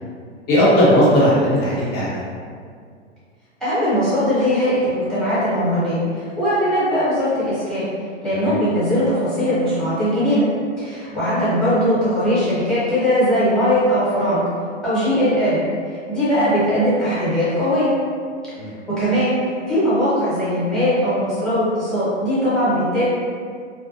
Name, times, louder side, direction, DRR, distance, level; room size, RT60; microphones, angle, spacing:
voice 1, 0.5-2.2 8.3-8.6 18.6-18.7, equal, 30° left, -8 dB, 0.9 m, -17 dB
voice 2, 3.6-7.9 8.2-10.5 10.8-14.4 14.8-17.9 18.9-19.4 19.7-23.0, equal, ahead, -13 dB, 0.9 m, -20 dB
2.3 x 2.1 x 2.7 m, 2.1 s
hypercardioid pair, 125°, 35 cm